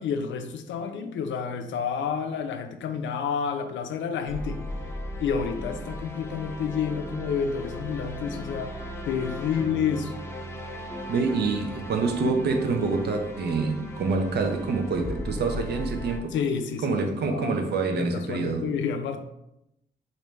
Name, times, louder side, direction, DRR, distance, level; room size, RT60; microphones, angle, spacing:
voice 1, 0.0-4.6 5.2-8.7 9.0-10.2 16.3-17.6 17.9-19.2, left 6 dB, 85° left, 0.4 m, -29 dB
sound 1, 4.3-16.2, left 1 dB, 15° left, 0.4 m, -37 dB
voice 2, 11.1-16.3 16.8-18.8, right 4 dB, 60° right, 0.5 m, -26 dB
3.3 x 2.6 x 3.1 m
wide cardioid pair, 140°, 19 cm